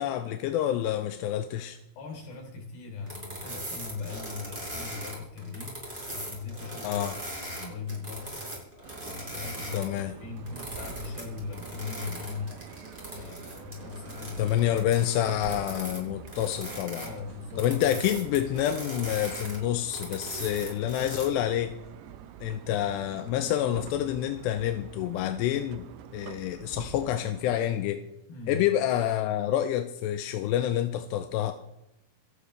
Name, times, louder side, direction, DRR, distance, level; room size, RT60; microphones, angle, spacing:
voice 1, 0.0-1.8 6.8-7.2 9.7-10.1 14.4-17.1 17.6-21.7 22.4-25.8 26.1-28.0 28.5-31.5, left 11 dB, 85° left, 7 dB, 2.8 m, -28 dB
voice 2, 2.0-5.8 6.1-7.0 7.4-8.4 9.0-12.5 13.1-14.7 17.0-18.0 28.3-28.6, left 5 dB, 60° left, 2 dB, 5.4 m, -39 dB
sound 1, 3.1-10.0 10.4-16.0 16.3-21.3, equal, 10° right, 5.6 m, -39 dB
sound 2, 8.8-27.6, right 9 dB, 75° right, 2.6 m, -46 dB
27.5 x 11.5 x 3.3 m, 0.83 s
omnidirectional pair, 5.0 m